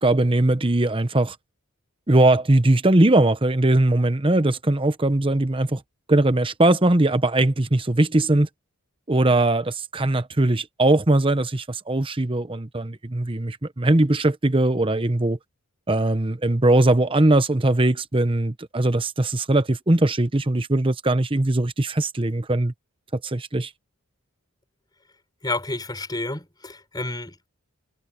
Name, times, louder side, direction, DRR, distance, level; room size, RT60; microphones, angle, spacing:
voice 1, 0.0-1.3 2.1-5.8 6.1-8.5 9.1-15.4 15.9-22.7 23.1-23.7, right 2 dB, 25° right, 1.0 m, -20 dB
voice 2, 25.4-27.5, left 2 dB, 20° left, 4.9 m, -30 dB
head